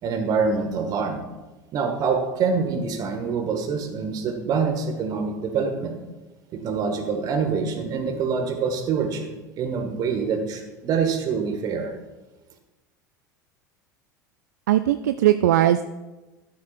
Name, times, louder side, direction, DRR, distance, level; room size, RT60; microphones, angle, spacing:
voice 1, 0.0-1.2 1.7-5.9 6.5-9.3 9.6-11.9, right 5 dB, 40° right, 5 dB, 1.7 m, -25 dB
voice 2, 14.7-15.8, right 13 dB, 60° right, 11 dB, 0.4 m, -19 dB
13.0 x 12.0 x 2.5 m, 1.1 s
figure-of-eight pair, 75°, 10 cm